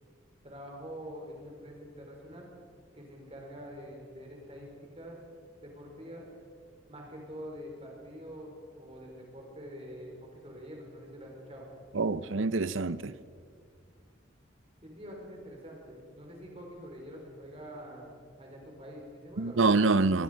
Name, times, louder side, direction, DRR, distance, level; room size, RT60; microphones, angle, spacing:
voice 1, 0.4-2.5 2.9-4.7 5.0-5.2 5.6-6.3 6.9-11.7 14.8-20.1, equal, 30° right, 4.8 m, -46 dB
voice 2, 11.9-13.1 19.4-20.2, right 3 dB, 85° right, 0.7 m, -26 dB
25.0 x 21.5 x 5.3 m
head